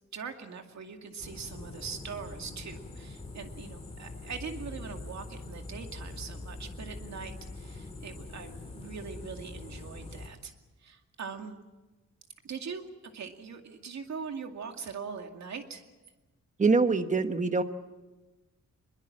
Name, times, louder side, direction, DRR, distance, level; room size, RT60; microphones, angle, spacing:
voice 1, 0.1-10.5 10.8-11.6 12.4-12.9 13.1-15.8, right 6 dB, 65° right, 4 dB, 2.3 m, -42 dB
sound 1, 1.2-10.3, left 2 dB, 20° left, 2.7 m, -43 dB
voice 2, 16.6-17.6, right 4 dB, 25° right, 9 dB, 1.1 m, -24 dB
23.5 x 22.0 x 7.5 m, 1.1 s
wide cardioid pair, 165°, 30 cm